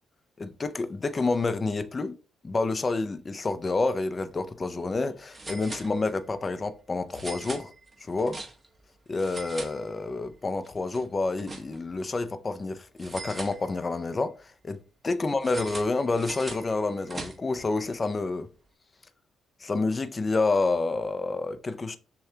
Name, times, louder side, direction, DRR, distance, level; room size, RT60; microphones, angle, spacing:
voice 1, 0.4-2.1 2.4-7.7 8.0-8.4 9.1-18.5 19.6-22.0, left 3 dB, 30° left, 0.4 m, -29 dB
sound 1, 4.1-4.3 4.6-4.7 5.3-6.4 7.1-8.8 9.1-10.3 10.6-12.0 13.0-14.1 15.4-17.7, right 3 dB, 25° right, 1.0 m, -42 dB
6.5 x 2.3 x 2.7 m
cardioid pair, 90°, 0 cm